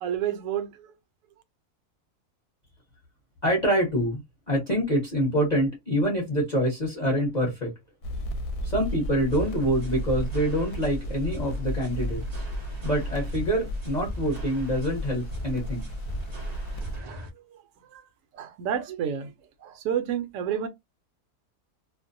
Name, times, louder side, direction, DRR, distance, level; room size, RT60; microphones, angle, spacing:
voice 1, 0.0-0.9 16.9-18.0 18.3-19.3 19.6-20.7, right 9 dB, 70° right, 0.9 m, -31 dB
voice 2, 3.4-7.7 8.6-12.5 12.8-15.9, equal, 35° left, 0.8 m, -26 dB
sound 1, 8.0-17.0, equal, 70° left, 0.9 m, -33 dB
sound 2, 9.3-17.3, equal, 50° right, 0.4 m, -42 dB
2.5 x 2.1 x 2.5 m
omnidirectional pair, 1.6 m